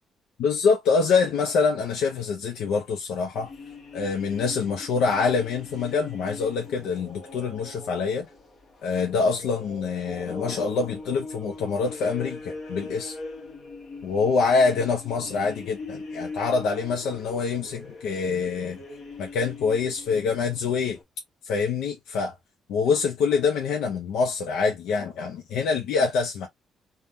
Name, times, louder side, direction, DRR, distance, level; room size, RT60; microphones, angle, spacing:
voice 1, 0.4-3.5 3.9-8.3 8.8-13.2 14.0-18.8 19.2-21.0 21.4-22.3 22.7-26.5, left 5 dB, 85° left, 0.5 m, -25 dB
sound 1, 3.3-21.0, left 3 dB, 50° left, 1.0 m, -41 dB
3.4 x 2.1 x 2.6 m
cardioid pair, 90°, 0 cm